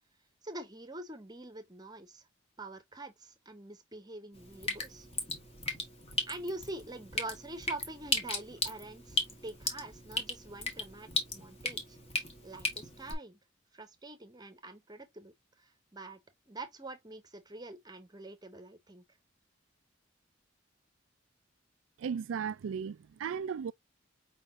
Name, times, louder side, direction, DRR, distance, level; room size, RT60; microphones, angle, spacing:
voice 1, 0.4-2.3 2.6-5.1 6.3-12.0 12.4-13.4 13.7-16.2 16.5-19.0, right 2 dB, 20° right, 0.9 m, -45 dB
Drip, 4.3-13.1, left 2 dB, 30° left, 1.5 m, -37 dB
voice 2, 22.0-23.7, right 7 dB, 80° right, 0.3 m, -36 dB
5.1 x 3.6 x 2.5 m
head